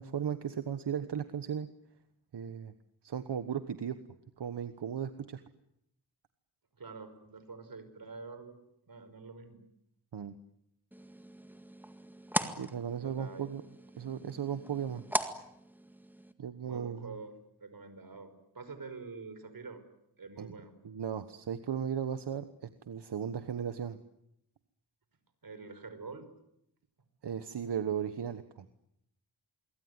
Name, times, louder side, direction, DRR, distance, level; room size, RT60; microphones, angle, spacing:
voice 1, 0.0-1.7 2.3-2.7 3.0-4.0 4.4-5.4 10.1-10.3 12.6-13.6 13.9-15.0 16.4-17.1 20.4-20.5 20.8-24.0 27.2-28.7, right 8 dB, 85° right, 10 dB, 1.3 m, -36 dB
voice 2, 6.8-8.6 8.9-9.6 12.9-13.5 16.6-19.8 20.2-20.7 25.4-26.3, right 4 dB, 60° right, 10 dB, 5.4 m, -46 dB
sound 1, 10.9-16.3, equal, 5° right, 2.0 m, -39 dB
26.0 x 23.5 x 9.7 m, 0.78 s
wide cardioid pair, 105°, 40 cm